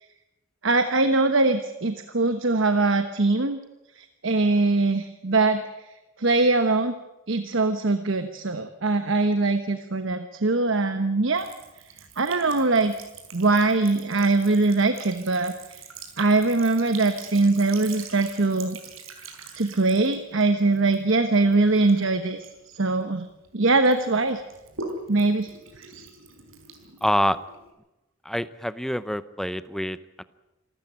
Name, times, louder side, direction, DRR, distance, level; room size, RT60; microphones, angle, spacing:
voice 1, 0.6-3.6 4.0-5.6 6.2-6.9 7.3-11.5 12.2-12.9 13.3-15.8 16.2-18.8 19.6-22.5 22.7-23.3 23.5-24.4 25.1-25.5 25.8-26.1, right 3 dB, 65° right, 8 dB, 1.1 m, -22 dB
Sink (filling or washing) / Trickle dribble, 11.3-23.5 23.8-27.7, right 4 dB, 80° right, 4.4 m, -43 dB
voice 2, 27.0-27.4 28.3-30.2, equal, ahead, 14 dB, 0.7 m, -26 dB
27.0 x 13.5 x 8.8 m, 1.0 s
head